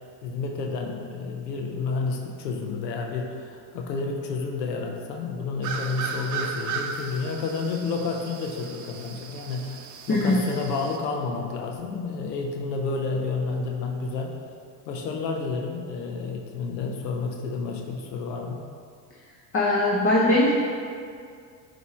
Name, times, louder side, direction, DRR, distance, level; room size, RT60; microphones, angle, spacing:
voice 1, 0.2-14.4 14.9-18.6, left 4 dB, 85° left, 1 dB, 0.8 m, -30 dB
sound 1, 5.6-11.0, right 5 dB, 40° right, 0.7 m, -36 dB
voice 2, 19.5-20.5, left 1 dB, 25° left, -4 dB, 0.9 m, -20 dB
8.0 x 3.0 x 4.3 m, 2.2 s
hypercardioid pair, 85°, 48 cm